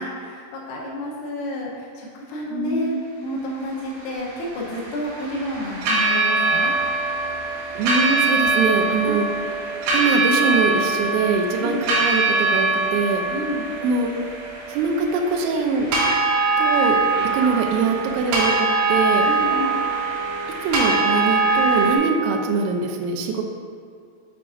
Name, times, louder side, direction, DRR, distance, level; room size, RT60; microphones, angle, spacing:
voice 1, 0.0-3.0 3.2-6.7 9.0-9.2 11.6-11.9 13.3-13.7 19.3-19.8, left 1 dB, 80° left, -3 dB, 3.5 m, -30 dB
voice 2, 2.5-3.0 7.8-9.3 9.9-13.2 13.8-14.1 14.7-15.9 16.6-17.0 17.3-19.3 20.6-23.4, right 4 dB, 85° right, 1 dB, 2.6 m, -23 dB
sound 1, 4.0-22.0, right 3 dB, 65° right, 3.0 m, -22 dB
7.8 x 4.8 x 2.5 m, 2.1 s
omnidirectional pair, 5.9 m